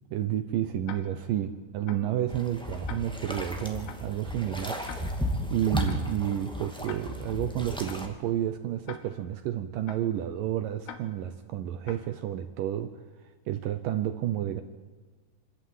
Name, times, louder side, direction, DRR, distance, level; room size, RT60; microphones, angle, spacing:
voice 1, 0.1-4.8 5.5-13.0 13.5-14.6, right 11 dB, 85° right, 9 dB, 1.9 m, -30 dB
Tick-tock, 0.8-1.3 1.9-2.2 2.9-3.3 3.9-4.2 4.9-5.3 5.9-6.2 6.9-7.3 7.9-8.2 8.9-9.3 9.9-10.2 10.8-11.3 11.8-12.2, left 8 dB, 70° left, 3.2 m, -45 dB
sound 1, 2.3-8.1, equal, 5° left, 0.6 m, -34 dB
26.0 x 13.5 x 9.4 m, 1.4 s
omnidirectional pair, 5.0 m